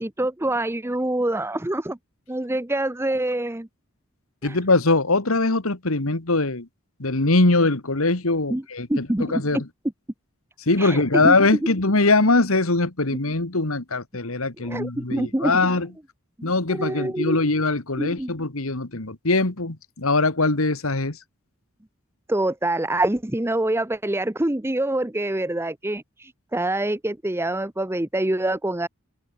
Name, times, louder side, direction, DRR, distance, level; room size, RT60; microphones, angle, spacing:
voice 1, 0.0-2.0 2.3-3.7 4.4-4.6 8.5-8.6 8.9-9.6 10.8-11.3 14.6-15.7 16.4-17.4 18.0-18.3 22.3-28.9, right 1 dB, 10° right, 0.8 m, -26 dB
voice 2, 4.4-6.7 7.0-9.7 10.7-15.9 16.4-21.2, left 3 dB, 70° left, 2.0 m, -22 dB
head